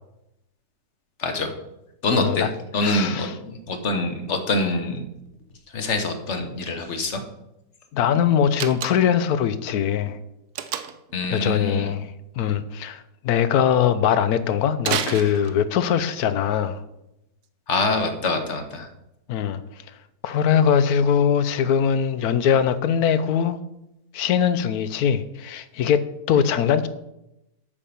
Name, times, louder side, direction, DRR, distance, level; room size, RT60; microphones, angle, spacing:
voice 1, 1.2-1.5 2.0-2.5 2.7-5.0 5.7-7.2 11.1-11.9 17.7-18.9, left 2 dB, 45° left, 6 dB, 1.3 m, -25 dB
voice 2, 2.1-2.5 2.8-3.3 7.9-10.2 11.3-12.1 12.4-16.8 19.3-19.6 20.2-23.6 24.1-26.9, left 8 dB, 70° left, 13 dB, 1.0 m, -21 dB
Slam, 8.5-9.3 10.6-11.1 14.8-15.9, right 9 dB, 70° right, 1.2 m, -29 dB
8.5 x 5.4 x 6.9 m, 0.87 s
omnidirectional pair, 1.9 m